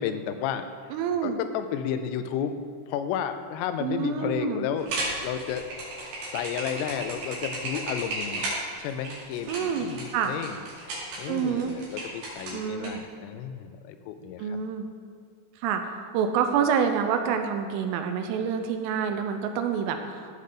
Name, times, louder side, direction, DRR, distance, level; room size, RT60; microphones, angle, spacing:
voice 1, 0.0-2.6 2.9-4.9 5.2-5.6 6.3-8.5 8.8-14.6, left 8 dB, 85° left, 9 dB, 3.3 m, -32 dB
voice 2, 0.9-1.4 3.8-4.7 9.5-10.3 11.3-11.8 12.5-13.0 14.4-14.9 15.6-15.8 16.1-20.3, right 7 dB, 80° right, 6 dB, 3.1 m, -27 dB
sound 1, 4.8-12.9, right 2 dB, 60° right, 4.3 m, -34 dB
15.5 x 5.7 x 3.8 m, 2.2 s
omnidirectional pair, 5.8 m